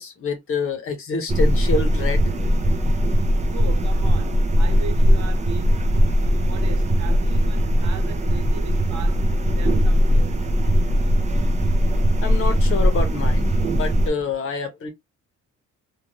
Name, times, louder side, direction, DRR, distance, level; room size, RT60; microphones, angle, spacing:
voice 1, 0.0-2.3 12.2-14.9, left 4 dB, 45° left, 0.8 m, -27 dB
sound 1, 1.3-14.1, equal, 25° right, 0.5 m, -19 dB
voice 2, 3.5-5.9 6.4-10.4, right 7 dB, 65° right, 0.7 m, -38 dB
2.5 x 2.3 x 2.8 m
cardioid pair, 175°, 30 cm